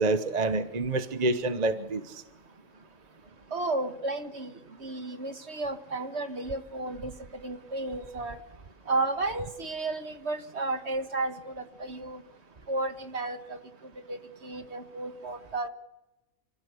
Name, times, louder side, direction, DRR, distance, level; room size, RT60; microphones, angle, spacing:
voice 1, 0.0-2.0, right 2 dB, 30° right, 9 dB, 1.0 m, -27 dB
voice 2, 3.5-4.5 4.8-8.4 8.9-12.2 12.7-13.6 14.1-15.7, right 2 dB, 50° right, 7 dB, 1.8 m, -33 dB
28.0 x 15.5 x 8.2 m, 0.95 s
omnidirectional pair, 1.5 m